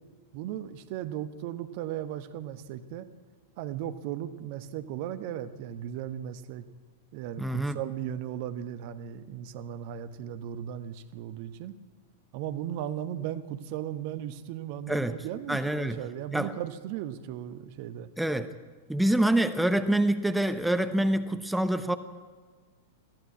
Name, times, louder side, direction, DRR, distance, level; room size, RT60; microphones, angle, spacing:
voice 1, 0.3-3.1 3.6-6.6 7.1-11.8 12.3-18.1, right 11 dB, 45° right, 11 dB, 1.1 m, -36 dB
voice 2, 7.4-7.8 14.9-15.2 15.5-16.0 16.3-16.5 18.2-18.5 18.9-21.9, right 1 dB, 5° right, 10 dB, 0.9 m, -26 dB
21.0 x 15.5 x 8.5 m, 1.5 s
figure-of-eight pair, 95°, 0 cm